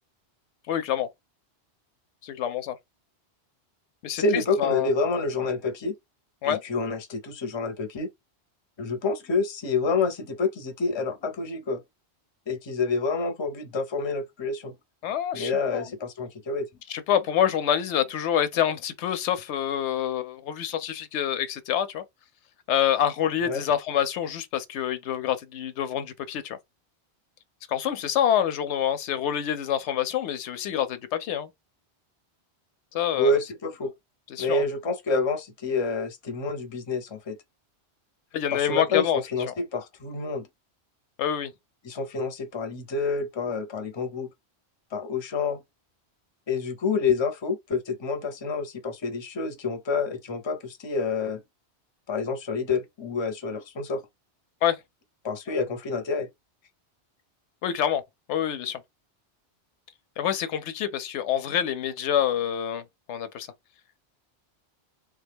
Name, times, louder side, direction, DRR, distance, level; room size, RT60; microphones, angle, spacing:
voice 1, 0.7-1.1 2.2-2.8 4.0-4.9 6.4-6.6 15.0-15.9 16.9-22.0 22.7-26.6 27.7-31.5 32.9-33.3 34.3-34.6 38.3-39.2 41.2-41.5 54.6-54.8 57.6-58.0 58.3-58.8 60.2-63.5, left 10 dB, 85° left, 0.9 m, -26 dB
voice 2, 4.2-6.0 6.4-8.1 8.8-11.8 12.5-14.7 15.3-16.7 23.5-23.6 33.1-33.9 34.4-37.4 38.5-40.5 41.8-44.3 44.9-45.6 46.5-51.4 52.1-54.0 55.2-56.3, left 4 dB, 30° left, 0.5 m, -28 dB
3.3 x 2.2 x 3.4 m
omnidirectional pair, 1.1 m